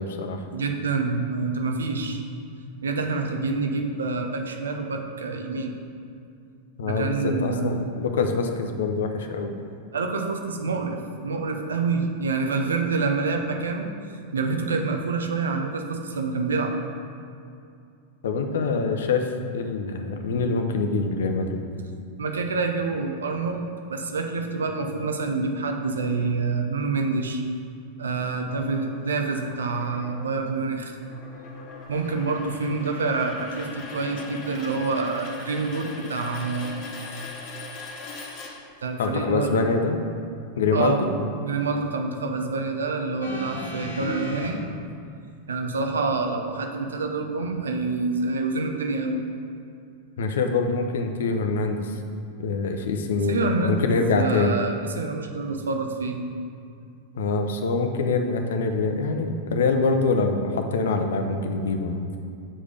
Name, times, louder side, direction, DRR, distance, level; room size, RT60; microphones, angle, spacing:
voice 1, 0.0-0.4 6.8-9.5 18.2-21.6 39.0-40.0 40.6-41.1 50.2-52.0 52.4-54.5 57.1-62.2, left 4 dB, 60° left, 6 dB, 0.7 m, -25 dB
voice 2, 0.5-2.2 2.8-5.8 6.8-7.9 9.9-11.0 11.2-13.9 14.3-16.7 22.2-27.4 28.0-31.0 31.9-36.8 38.8-39.6 40.7-41.0 41.4-44.6 45.5-49.2 53.3-56.2, right 4 dB, 70° right, 4 dB, 0.7 m, -27 dB
sound 1, 28.5-39.1, left 3 dB, 40° left, 1.4 m, -41 dB
sound 2, 43.2-44.5 45.5-45.6, equal, 80° left, 1.1 m, -33 dB
7.5 x 4.9 x 5.1 m, 2.4 s
figure-of-eight pair, 90°, 0 cm